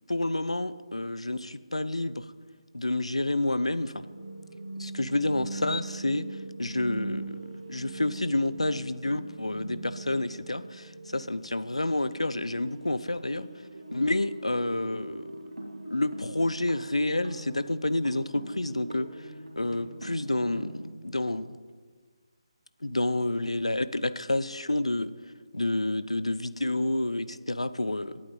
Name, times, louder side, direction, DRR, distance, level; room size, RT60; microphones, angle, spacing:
voice 1, 0.1-2.2 2.7-4.1 4.8-6.3 6.6-7.4 7.7-13.5 13.9-15.3 15.8-19.3 19.6-21.6 22.8-25.1 25.5-28.2, left 2 dB, 80° left, 14 dB, 0.6 m, -29 dB
sound 1, 4.0-20.8, right 2 dB, 80° right, 2.1 m, -41 dB
18.5 x 8.7 x 3.9 m, 1.5 s
figure-of-eight pair, 150°, 3 cm